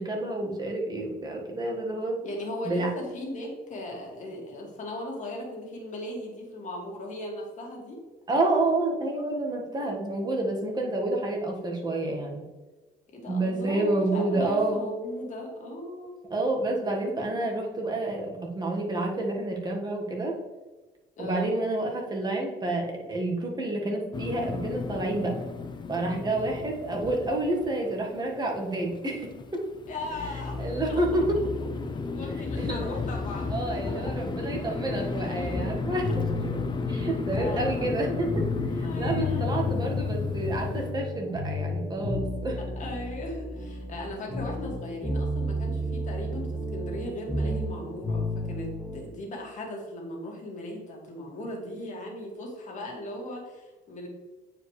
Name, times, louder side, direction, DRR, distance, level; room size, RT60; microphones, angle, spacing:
voice 1, 0.0-2.2 2.6-2.9 8.3-12.4 13.3-14.9 16.3-20.3 21.2-25.3 25.9-29.6 30.6-31.2 32.3-33.0 33.5-36.2 36.9-42.6, right 2 dB, 25° right, 0 dB, 1.6 m, -29 dB
voice 2, 2.2-8.0 13.1-16.2 16.8-17.0 17.4-17.5 21.2-21.6 26.4-26.5 29.9-30.6 30.9-31.0 32.1-33.6 33.8-34.1 37.4-37.9 38.8-39.7 42.8-54.1, left 1 dB, 45° left, -1 dB, 2.2 m, -38 dB
sound 1, 24.1-40.9, left 4 dB, 25° left, 0.5 m, -33 dB
sound 2, 35.5-49.0, left 1 dB, ahead, 1.7 m, -32 dB
9.0 x 4.9 x 3.3 m, 1.2 s
cardioid pair, 110°, 17 cm